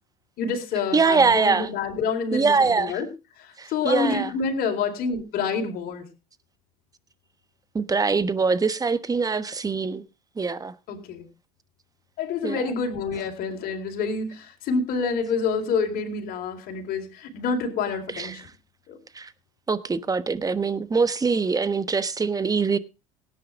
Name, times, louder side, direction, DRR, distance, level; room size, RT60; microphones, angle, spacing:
voice 1, 0.4-3.1 3.4-6.0 10.9-11.3 12.2-18.4 18.9-19.0, left 5 dB, 55° left, 4.3 m, -27 dB
voice 2, 0.9-1.7 2.3-3.0 3.6-4.3 7.7-10.0 10.4-10.7 12.4-12.7 18.1-18.4 19.1-19.3 19.7-22.8, right 4 dB, 20° right, 1.2 m, -23 dB
17.5 x 9.8 x 3.6 m
hypercardioid pair, 85°, 18 cm